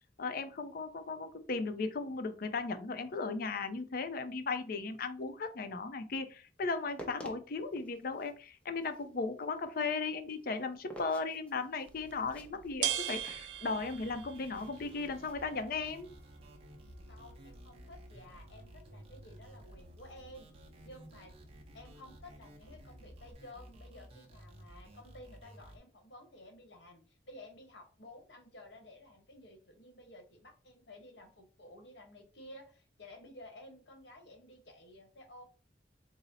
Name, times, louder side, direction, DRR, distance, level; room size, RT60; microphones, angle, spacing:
voice 1, 0.2-16.1, left 4 dB, 55° left, 8 dB, 0.5 m, -36 dB
sound 1, 6.7-16.2, right 1 dB, 5° left, 0.6 m, -54 dB
sound 2, 11.9-23.3, right 11 dB, 80° right, 0.4 m, -44 dB
sound 3, 13.8-25.8, equal, 35° right, 0.6 m, -55 dB
voice 2, 17.1-20.5 20.8-21.3 21.7-35.4, left 1 dB, 85° left, 4 dB, 1.1 m, -54 dB
4.1 x 2.0 x 3.9 m, 0.35 s
head